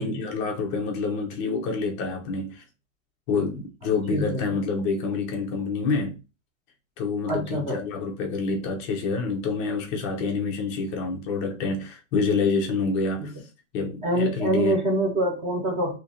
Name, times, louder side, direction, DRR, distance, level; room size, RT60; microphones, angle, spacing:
voice 1, 0.0-2.6 3.3-6.2 7.0-13.3 13.7-14.8, left 4 dB, 20° left, 0.6 m, -27 dB
voice 2, 4.1-4.5 7.3-7.8 13.2-13.3 14.0-16.0, right 1 dB, 15° right, 1.2 m, -25 dB
2.8 x 2.8 x 4.0 m
hypercardioid pair, 160°, 42 cm